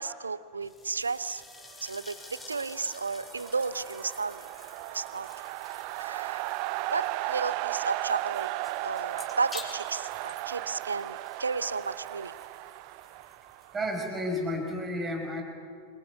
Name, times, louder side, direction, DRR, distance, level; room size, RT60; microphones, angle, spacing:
voice 1, 0.0-1.4 1.8-2.1 2.5-4.5 4.9-5.3 6.0-6.5 6.9-8.5 8.8-12.3, right 4 dB, 75° right, 17 dB, 0.8 m, -33 dB
sound 1, 0.6-14.8, left 3 dB, 10° left, 4.0 m, -50 dB
sound 2, 2.1-14.0, right 18 dB, 45° right, 0.7 m, -36 dB
voice 2, 13.7-15.4, equal, 15° right, 4 dB, 5.6 m, -31 dB
27.5 x 23.0 x 8.5 m, 2.2 s
figure-of-eight pair, 90°, 0 cm